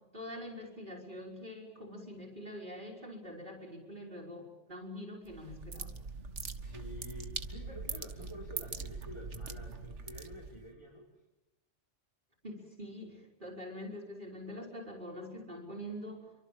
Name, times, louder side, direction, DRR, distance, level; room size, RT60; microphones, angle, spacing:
voice 1, 0.0-6.0 12.4-16.3, equal, 40° right, -2 dB, 4.7 m, -45 dB
sound 1, 5.3-10.7, right 4 dB, 65° right, 1.9 m, -42 dB
voice 2, 6.6-11.0, equal, 25° left, -3 dB, 5.6 m, -49 dB
29.0 x 24.5 x 7.5 m, 1.0 s
omnidirectional pair, 1.3 m